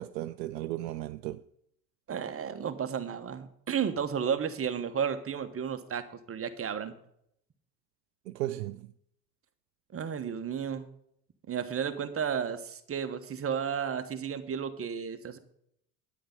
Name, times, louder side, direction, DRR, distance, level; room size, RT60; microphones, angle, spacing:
voice 1, 0.0-1.4 8.3-8.9, right 15 dB, 75° right, 0.6 m, -35 dB
voice 2, 2.1-6.9 9.9-10.9 11.5-15.4, right 7 dB, 25° right, 1.2 m, -33 dB
9.5 x 9.4 x 5.2 m
hypercardioid pair, 75°, 50 cm